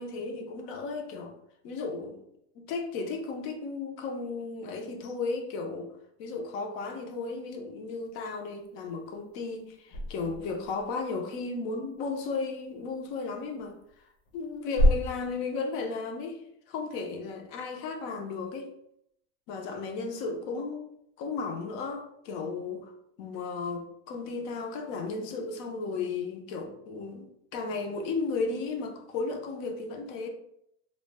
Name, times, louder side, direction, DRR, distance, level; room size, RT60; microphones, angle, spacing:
voice 1, 0.0-1.3 1.6-2.2 2.6-5.9 6.2-14.0 14.3-16.4 16.7-18.7 19.5-22.9 23.2-30.3, left 4 dB, 40° left, 4 dB, 0.4 m, -34 dB
sound 1, 9.9-11.1 12.4-12.5 13.6-15.4, left 1 dB, 85° left, 0.9 m, -28 dB
2.3 x 2.1 x 3.4 m, 0.76 s
supercardioid pair, 160°, 33 cm